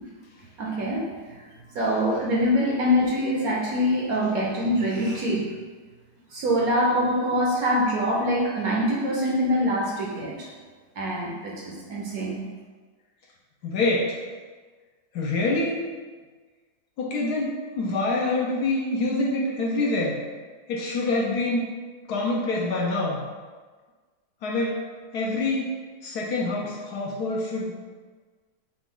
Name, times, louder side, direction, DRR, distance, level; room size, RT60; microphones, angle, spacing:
voice 1, 0.6-1.4 1.7-5.4 6.3-10.5 11.0-12.4, equal, 60° right, -3 dB, 1.0 m, -24 dB
voice 2, 13.6-14.2 15.1-15.8 17.0-20.2 20.7-21.6 22.1-23.2 24.4-24.9 25.1-25.7 26.0-27.7, left 2 dB, 70° left, -3 dB, 1.0 m, -26 dB
6.0 x 2.2 x 3.8 m, 1.4 s
omnidirectional pair, 2.0 m